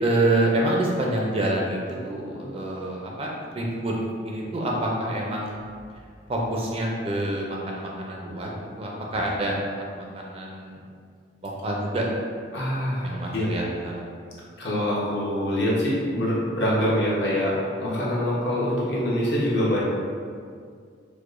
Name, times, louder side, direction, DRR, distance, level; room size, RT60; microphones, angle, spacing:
voice 1, 0.0-1.8 2.0-4.0 4.3-5.6 6.3-8.5 8.8-10.8 11.4-12.1 13.0-14.0, right 1 dB, 30° right, -2 dB, 0.4 m, -27 dB
voice 2, 12.5-13.5 14.6-19.8, equal, 65° left, -6 dB, 0.8 m, -25 dB
4.6 x 2.1 x 2.4 m, 2.1 s
head